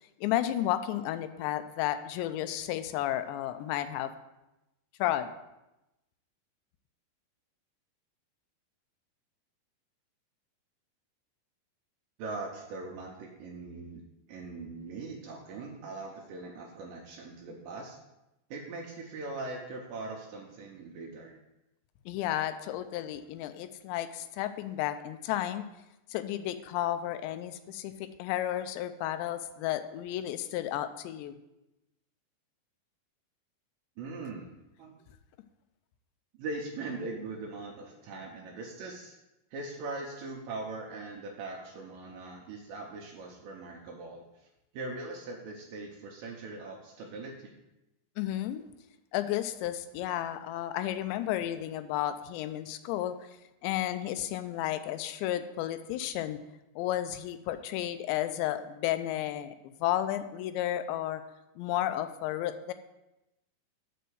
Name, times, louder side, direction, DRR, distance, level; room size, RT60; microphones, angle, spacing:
voice 1, 0.2-4.1 5.0-5.3 22.1-25.7 26.1-27.9 28.2-31.4 48.2-48.6 49.1-53.2 53.6-56.4 56.8-61.2 61.6-62.7, left 12 dB, 90° left, 10 dB, 2.8 m, -32 dB
voice 2, 12.2-14.0 14.3-18.0 18.5-21.4 34.0-34.5 34.8-35.0 36.3-39.2 39.5-44.5 44.7-47.5, right 3 dB, 90° right, -1 dB, 2.0 m, -41 dB
6.8 x 5.4 x 6.3 m, 0.94 s
omnidirectional pair, 5.0 m